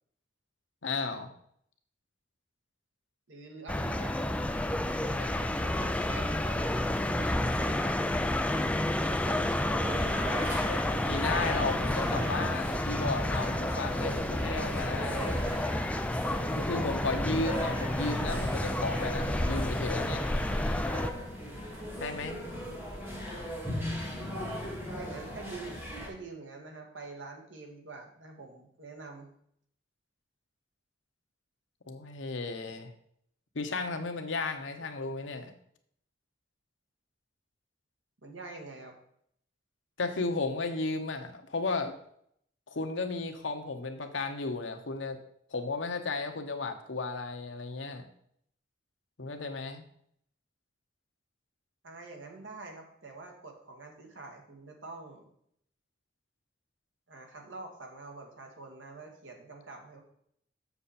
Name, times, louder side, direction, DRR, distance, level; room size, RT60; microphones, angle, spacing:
voice 1, 0.8-1.3 11.1-15.3 16.5-20.3 22.0-22.4 31.9-32.9 33.5-35.5 40.0-41.9 42.7-45.2 45.5-48.1 49.2-49.8, left 3 dB, 85° left, 5 dB, 1.0 m, -34 dB
voice 2, 3.3-4.2 5.2-8.0 9.0-10.5 24.9-29.3 38.2-39.0 51.8-55.3 57.1-60.0, right 3 dB, 85° right, 2 dB, 1.7 m, -46 dB
sound 1, 3.7-21.1, left 1 dB, 5° left, 0.3 m, -30 dB
sound 2, 9.8-26.1, equal, 10° right, 2.2 m, -38 dB
7.0 x 6.8 x 4.3 m, 0.69 s
head